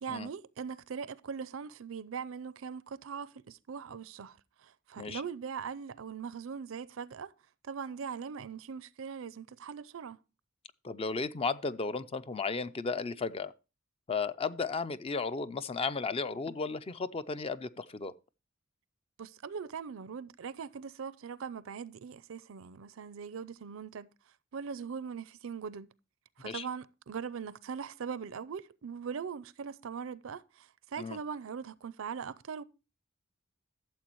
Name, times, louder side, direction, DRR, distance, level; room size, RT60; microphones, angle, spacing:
voice 1, 0.0-7.3 7.6-10.2 19.2-24.1 24.5-25.9 26.4-32.6, right 6 dB, 70° right, 0.5 m, -41 dB
voice 2, 10.8-13.5 14.1-18.1 26.4-26.7 31.0-31.2, left 4 dB, 25° left, 0.4 m, -34 dB
12.5 x 7.4 x 3.0 m
head